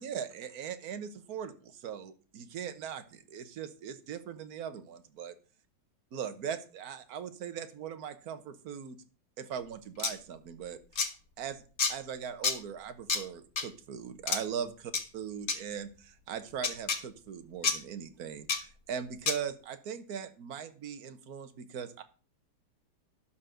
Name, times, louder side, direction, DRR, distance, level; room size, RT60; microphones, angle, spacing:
voice 1, 0.0-5.3 6.1-9.0 9.4-11.1 11.4-11.6 11.9-22.0, right 8 dB, 50° right, 9 dB, 1.4 m, -40 dB
sound 1, 10.0-10.1 10.9-11.1 11.8-11.9 12.4-12.6 13.1-13.2 13.6-13.7 14.3-14.4 14.9-15.0 15.5-15.6 16.6-17.0 17.6-17.8 18.5-18.6 19.3-19.4, left 5 dB, 40° left, 1.6 m, -28 dB
12.0 x 4.1 x 7.7 m, 0.37 s
omnidirectional pair, 2.3 m